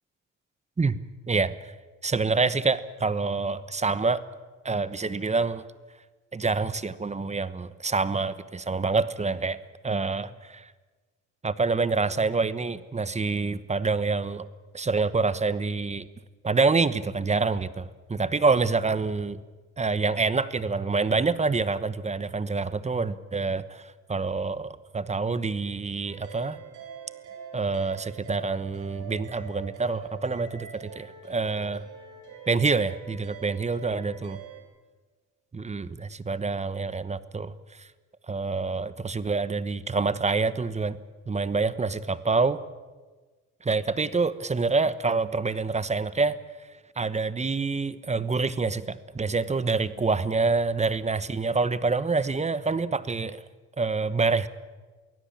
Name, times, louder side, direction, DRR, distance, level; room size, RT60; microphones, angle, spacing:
voice 1, 1.3-1.7 2.0-4.2 4.6-5.6 6.3-9.6 9.8-10.7 11.4-14.5 14.7-16.1 16.4-19.4 19.8-26.6 27.5-31.8 32.5-34.4 35.5-37.5 37.8-37.9 38.3-41.0 41.3-42.6 43.6-46.4 47.0-53.4 53.8-54.5, right 4 dB, 20° right, 15 dB, 1.0 m, -26 dB
sound 1, 26.0-34.6, right 7 dB, 80° right, 5.3 m, -44 dB
23.5 x 16.5 x 8.7 m, 1.3 s
cardioid pair, 90°, 30 cm